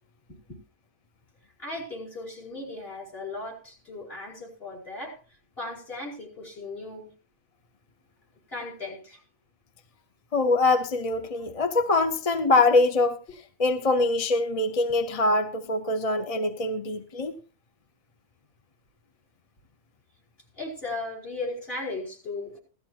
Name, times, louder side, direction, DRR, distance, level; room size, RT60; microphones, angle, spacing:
voice 1, 0.3-0.6 1.6-7.1 8.5-9.2 20.6-22.6, left 2 dB, 55° left, 5.0 m, -37 dB
voice 2, 10.3-17.3, left 2 dB, 35° left, 0.8 m, -24 dB
16.5 x 13.5 x 2.9 m
omnidirectional pair, 1.2 m